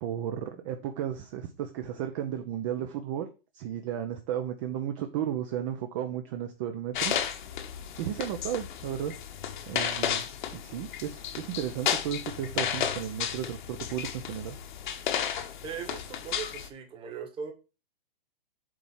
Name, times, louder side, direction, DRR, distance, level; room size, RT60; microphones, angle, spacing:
voice 1, 0.0-3.3 3.5-7.2 8.0-9.1 9.7-14.6, right 10 dB, 30° right, 0.8 m, -34 dB
Raining Inside, 6.9-16.7, left 9 dB, 55° left, 1.4 m, -33 dB
voice 2, 15.6-17.5, right 6 dB, 15° right, 1.5 m, -39 dB
7.7 x 4.2 x 5.6 m
hypercardioid pair, 145°, 30 cm